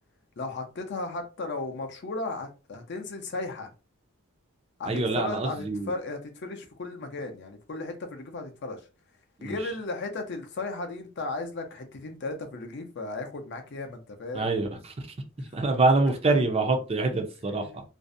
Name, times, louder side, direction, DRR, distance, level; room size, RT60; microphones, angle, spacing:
voice 1, 0.4-3.7 4.8-8.8 9.4-14.5 17.6-17.8, left 2 dB, 50° left, 0.5 m, -35 dB
voice 2, 4.9-5.9 9.4-9.6 14.3-14.9 15.5-17.8, right 3 dB, 30° right, 0.4 m, -25 dB
2.5 x 2.0 x 2.5 m
head